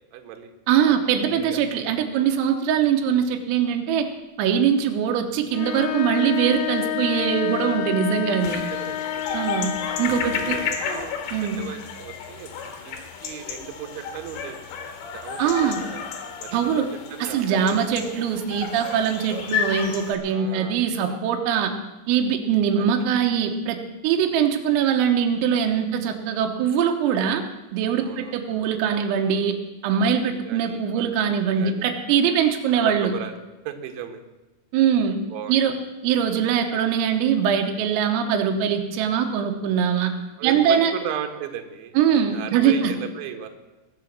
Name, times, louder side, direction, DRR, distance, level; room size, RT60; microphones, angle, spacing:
voice 1, 0.1-0.5 1.5-1.6 2.1-2.3 8.7-9.5 10.2-14.6 15.1-16.1 16.3-16.8 17.1-17.8 18.2-18.3 20.3-21.2 22.8-23.1 24.3-24.5 27.3-27.4 28.0-28.4 29.9-31.1 31.4-31.9 32.8-33.4 33.7-34.2 35.3-35.6 40.4-42.0 42.3-43.5, right 9 dB, 70° right, 5 dB, 3.4 m, -36 dB
voice 2, 0.7-4.1 4.4-8.6 9.3-9.7 10.0-10.6 11.3-11.6 15.4-15.8 16.5-16.9 17.2-21.7 22.1-23.8 24.0-27.4 27.7-29.6 29.8-33.1 34.7-35.2 35.5-35.7 36.0-40.1 40.4-40.9 42.0-42.9, right 8 dB, 90° right, 4 dB, 3.7 m, -22 dB
sound 1, 5.5-11.0, left 11 dB, 85° left, 3.5 m, -29 dB
sound 2, 8.4-20.2, left 6 dB, 65° left, 3.5 m, -32 dB
20.5 x 6.9 x 7.5 m, 1.1 s
omnidirectional pair, 6.0 m